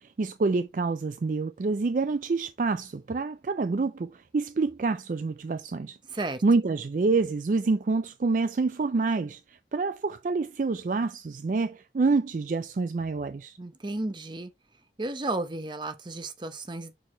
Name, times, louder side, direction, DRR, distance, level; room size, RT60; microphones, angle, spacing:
voice 1, 0.0-6.0 6.4-13.6, right 3 dB, 45° right, 0.4 m, -27 dB
voice 2, 6.1-6.4 13.6-14.5 15.0-16.9, right 2 dB, 25° right, 0.8 m, -33 dB
6.3 x 4.6 x 4.3 m
head